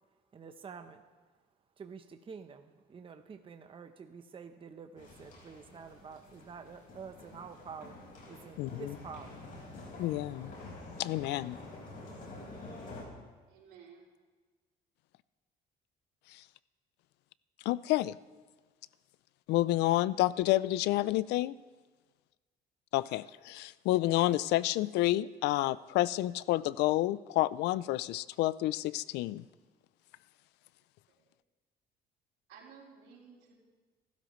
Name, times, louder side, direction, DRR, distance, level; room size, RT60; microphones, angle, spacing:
voice 1, 0.3-1.0 1.8-8.0 8.3-9.5, right 6 dB, 30° right, 7 dB, 0.9 m, -48 dB
sound 1, 5.0-13.0, left 2 dB, 55° left, 5.2 m, -48 dB
voice 2, 8.6-9.0 10.0-10.5 11.0-11.6 16.3-16.4 17.7-18.2 19.5-21.6 22.9-29.4, left 16 dB, 85° left, 19 dB, 0.4 m, -29 dB
voice 3, 13.5-14.0 31.2-31.3 32.5-33.5, right 6 dB, 85° right, -3 dB, 4.2 m, -55 dB
27.5 x 12.5 x 3.2 m, 1.4 s
cardioid pair, 110°, 17 cm